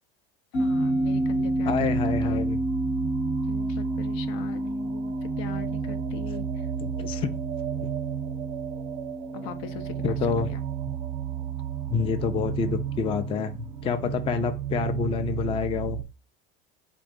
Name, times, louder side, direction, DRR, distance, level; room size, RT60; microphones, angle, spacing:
sound 1, 0.5-13.3, equal, 90° left, 1.4 m, -31 dB
sound 2, 0.5-16.0, right 12 dB, 75° right, 0.5 m, -33 dB
voice 1, 0.6-2.4 3.5-6.7 9.3-10.6, left 8 dB, 75° left, 0.6 m, -40 dB
voice 2, 1.7-2.6 6.8-7.3 7.8-7.9 10.0-10.5 11.9-16.0, left 6 dB, 20° left, 0.3 m, -28 dB
3.8 x 2.6 x 3.6 m
supercardioid pair, 105°, 32 cm